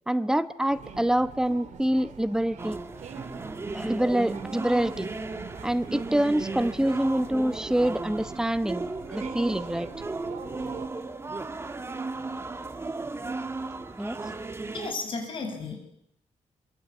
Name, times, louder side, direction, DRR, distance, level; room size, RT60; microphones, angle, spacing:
voice 1, 0.1-2.8 3.7-5.2 5.6-9.9 14.0-14.2, right 1 dB, 5° right, 12 dB, 1.1 m, -26 dB
sound 1, 0.7-10.9, right 8 dB, 85° right, 2.5 m, -45 dB
sound 2, 2.6-14.9, right 3 dB, 20° right, 1.8 m, -35 dB
voice 2, 14.7-15.8, left 4 dB, 45° left, 5 dB, 7.5 m, -33 dB
26.5 x 25.0 x 8.7 m, 0.78 s
wide cardioid pair, 150°, 12 cm